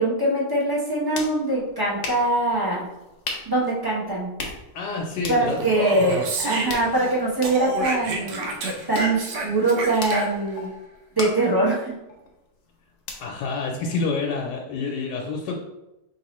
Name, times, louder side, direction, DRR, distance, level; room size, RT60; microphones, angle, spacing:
voice 1, 0.0-2.9 3.5-4.3 5.3-8.5 8.9-10.7 11.2-11.9, right 2 dB, 20° right, -5 dB, 0.6 m, -23 dB
sound 1, 0.7-14.4, left 3 dB, 55° left, 0.9 m, -40 dB
voice 2, 4.7-5.6 6.1-6.2 13.2-15.6, left 4 dB, 85° left, -1 dB, 1.2 m, -28 dB
Speech, 5.5-7.1 7.4-10.6, right 2 dB, 85° right, 1.3 m, -30 dB
4.6 x 2.9 x 3.0 m, 0.94 s
omnidirectional pair, 1.8 m